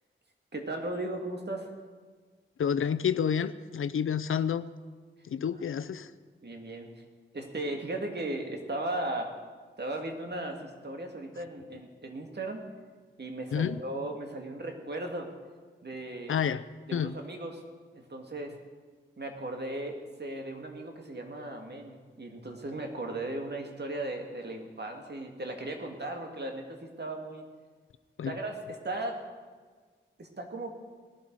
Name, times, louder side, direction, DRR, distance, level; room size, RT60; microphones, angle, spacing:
voice 1, 0.5-1.7 5.5-5.6 6.4-6.9 7.3-9.3 9.8-12.7 13.2-15.3 15.8-16.4 16.9-17.6 17.9-18.6 19.2-27.4 28.3-29.2 30.2-30.7, right 2 dB, 55° right, 3 dB, 2.2 m, -37 dB
voice 2, 2.6-4.7 5.3-6.1 13.5-13.8 16.3-16.6 16.9-17.1 28.2-28.3, left 7 dB, 90° left, 14 dB, 0.5 m, -29 dB
18.5 x 11.5 x 4.7 m, 1.5 s
cardioid pair, 60°, 21 cm